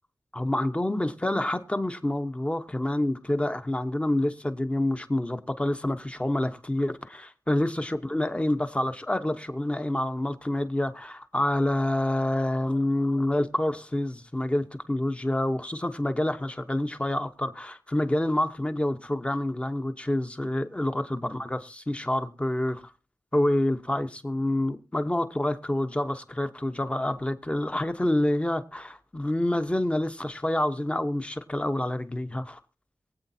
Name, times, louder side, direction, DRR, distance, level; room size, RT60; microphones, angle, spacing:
voice 1, 0.3-22.8 23.3-32.6, left 1 dB, 15° left, 0.9 m, -27 dB
23.0 x 8.3 x 2.7 m
wide cardioid pair, 100°, 7 cm